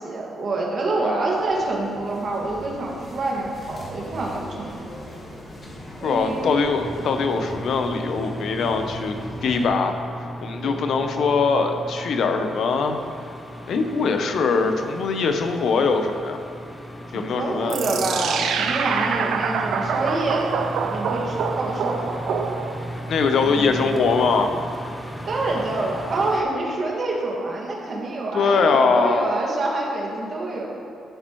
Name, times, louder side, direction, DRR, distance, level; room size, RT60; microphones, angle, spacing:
voice 1, 0.0-4.7 6.0-6.5 10.6-10.9 17.1-20.5 20.8-22.4 23.4-23.7 25.3-30.8, right 2 dB, 45° right, -2 dB, 1.9 m, -27 dB
sound 1, 1.3-9.7, equal, 30° left, 1.6 m, -40 dB
voice 2, 6.0-9.2 9.4-10.0 10.4-13.0 13.7-16.4 17.1-17.8 23.1-24.5 28.3-29.3, left 4 dB, 65° left, 6 dB, 0.7 m, -22 dB
sound 2, 6.8-26.4, equal, 5° left, 0.7 m, -36 dB
sound 3, 17.7-23.0, right 6 dB, 75° right, 0.6 m, -26 dB
11.0 x 8.9 x 3.1 m, 2.5 s
cardioid pair, 120°, 0 cm